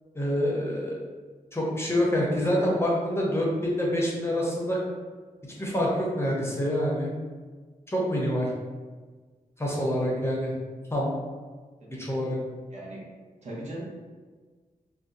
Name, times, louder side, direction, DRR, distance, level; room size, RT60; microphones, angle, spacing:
voice 1, 0.1-1.0 1.5-4.8 5.4-7.1 7.9-8.5 9.6-10.5 10.9-11.1 11.9-12.4, equal, 15° left, -4 dB, 0.6 m, -26 dB
voice 2, 12.7-13.0 13.4-13.8, right 1 dB, 50° right, -5 dB, 0.9 m, -38 dB
2.6 x 2.2 x 3.7 m, 1.4 s
wide cardioid pair, 105°, 15 cm